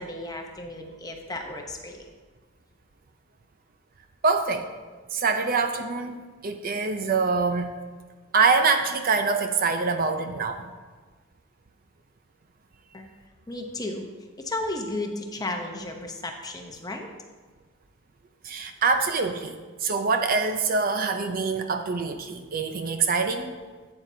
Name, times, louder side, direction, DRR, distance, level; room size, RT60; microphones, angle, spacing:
voice 1, 0.0-2.1 12.9-13.1 13.5-14.1 14.4-17.1, left 2 dB, 15° left, 3 dB, 0.8 m, -34 dB
voice 2, 4.2-4.7 5.1-6.2 6.4-7.7 8.3-10.7 18.4-23.5, right 4 dB, 40° right, 7 dB, 0.5 m, -25 dB
11.5 x 8.6 x 2.7 m, 1.4 s
head